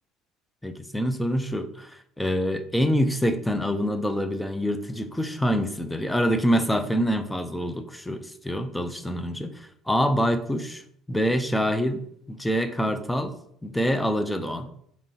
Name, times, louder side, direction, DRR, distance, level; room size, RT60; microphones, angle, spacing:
voice 1, 0.6-10.8 11.1-12.0 12.3-13.4 13.6-14.7, equal, 5° left, 8 dB, 0.4 m, -26 dB
5.3 x 3.0 x 2.8 m, 0.69 s
cardioid pair, 110°, 0 cm